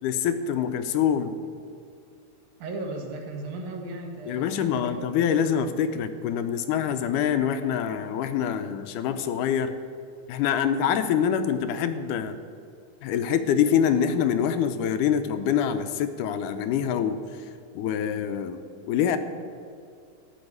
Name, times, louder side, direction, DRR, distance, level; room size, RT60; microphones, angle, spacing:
voice 1, 0.0-1.3 4.3-9.7 10.3-12.4 13.0-17.2 17.8-18.6 18.9-19.2, left 8 dB, 80° left, 10 dB, 2.1 m, -25 dB
voice 2, 2.6-5.0, right 2 dB, 65° right, 2 dB, 2.8 m, -36 dB
13.5 x 6.2 x 9.2 m, 2.3 s
omnidirectional pair, 3.9 m